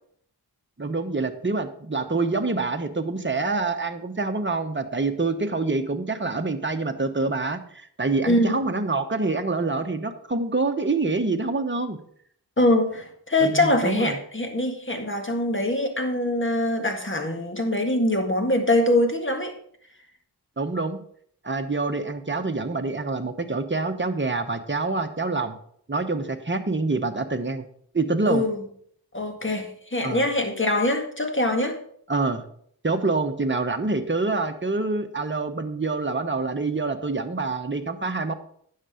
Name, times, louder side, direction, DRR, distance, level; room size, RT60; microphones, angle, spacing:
voice 1, 0.8-12.0 13.4-14.2 20.6-21.0 21.4-25.6 25.9-27.6 27.9-28.4 30.0-30.3 32.1-32.4 32.8-38.3, right 3 dB, 30° right, 6 dB, 1.1 m, -26 dB
voice 2, 8.2-8.6 12.6-19.5 28.3-28.6 29.1-31.8, left 1 dB, 30° left, 4 dB, 1.9 m, -23 dB
9.7 x 6.8 x 5.1 m, 0.64 s
wide cardioid pair, 45°, 39 cm